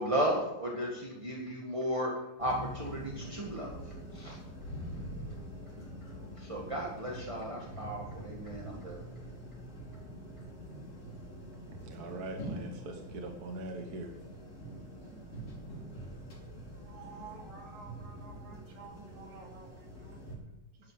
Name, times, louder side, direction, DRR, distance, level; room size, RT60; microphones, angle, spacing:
voice 1, 0.0-2.1 2.4-4.4 5.8-5.9 6.2-9.1, equal, 15° right, -2 dB, 1.2 m, -35 dB
sound 1, 2.4-20.4, equal, 50° left, 5.0 m, -45 dB
voice 2, 11.8-14.1, right 2 dB, 45° right, 3 dB, 1.3 m, -42 dB
voice 3, 16.9-19.7 20.0-20.2, right 5 dB, 80° right, 1 dB, 3.9 m, -51 dB
12.5 x 11.0 x 5.1 m, 0.97 s
omnidirectional pair, 3.4 m